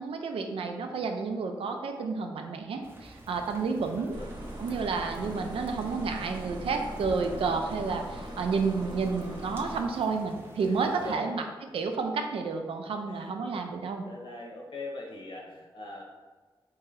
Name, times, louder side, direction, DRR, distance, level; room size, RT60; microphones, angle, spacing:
voice 1, 0.0-4.2 4.6-11.4 11.7-14.0, right 4 dB, 90° right, 4 dB, 0.4 m, -30 dB
sound 1, 2.8-11.2, right 1 dB, 25° right, 0.6 m, -48 dB
voice 2, 3.4-3.9 4.1-4.3 10.7-11.3 13.1-13.4 14.0-16.0, left 2 dB, 65° left, -2 dB, 1.0 m, -42 dB
sound 2, 4.1-9.8, right 1 dB, 50° right, 0.9 m, -41 dB
3.1 x 2.8 x 3.7 m, 1.4 s
cardioid pair, 55°, 9 cm